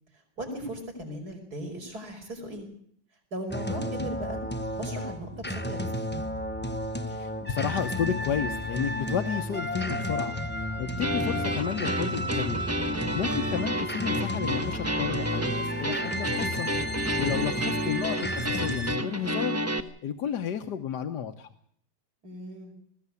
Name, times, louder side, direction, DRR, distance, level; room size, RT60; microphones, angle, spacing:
voice 1, 0.1-2.7 3.3-4.4 4.8-5.9 17.1-17.7 22.2-22.7, equal, 60° right, 4 dB, 5.8 m, -38 dB
sound 1, 3.5-18.9, equal, 10° left, 0.8 m, -32 dB
voice 2, 7.1-12.6 12.9-19.6 20.0-21.5, left 8 dB, 70° left, 6 dB, 1.6 m, -32 dB
sound 2, 11.0-19.8, equal, 10° right, 1.0 m, -31 dB
20.5 x 15.5 x 8.3 m, 0.66 s
omnidirectional pair, 1.9 m